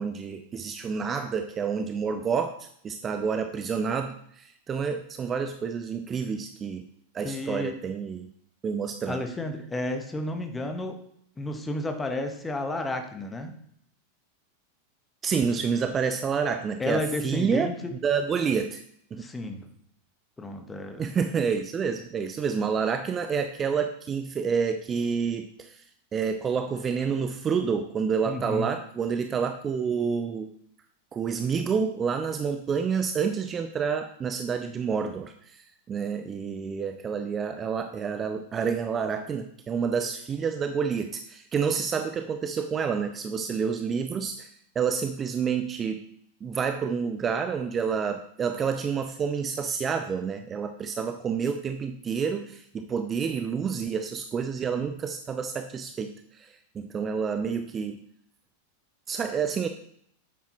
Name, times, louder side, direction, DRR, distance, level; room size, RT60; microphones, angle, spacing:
voice 1, 0.0-6.8 7.1-8.3 8.6-9.2 15.2-18.8 19.1-19.3 21.0-25.8 26.1-30.5 31.1-44.5 44.8-46.1 46.4-58.0 59.1-59.7, right 6 dB, 25° right, 8 dB, 0.6 m, -29 dB
voice 2, 7.2-7.7 9.1-10.9 11.4-13.5 16.8-17.9 19.2-19.7 20.4-21.0 28.3-28.7, left 2 dB, 10° left, 6 dB, 1.3 m, -32 dB
9.6 x 8.2 x 3.0 m, 0.66 s
figure-of-eight pair, 90°, 0 cm